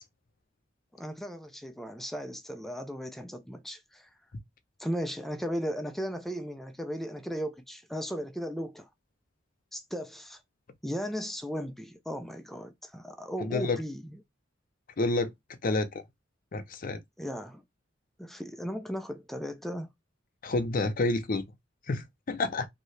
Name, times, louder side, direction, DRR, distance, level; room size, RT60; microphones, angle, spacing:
voice 1, 0.9-4.1 4.8-8.9 9.7-10.4 10.8-14.2 17.2-17.6 18.2-19.9, equal, ahead, 0.3 m, -36 dB
voice 2, 13.4-13.8 15.0-15.3 15.6-16.0 16.5-17.0 20.4-21.4 21.9-22.7, left 2 dB, 50° left, 0.5 m, -29 dB
2.8 x 2.6 x 3.2 m
head